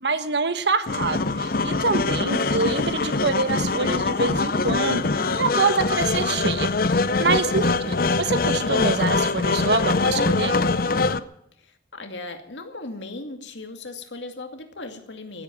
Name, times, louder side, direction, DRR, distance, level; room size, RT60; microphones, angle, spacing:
voice 1, 0.0-6.7 7.2-10.6, right 3 dB, 70° right, 11 dB, 1.3 m, -25 dB
sound 1, 0.9-11.2, left 3 dB, 55° left, 0.7 m, -23 dB
voice 2, 2.0-2.5 7.7-8.0 11.6-15.4, left 2 dB, 90° left, 6 dB, 2.4 m, -38 dB
16.0 x 8.6 x 9.4 m, 0.77 s
head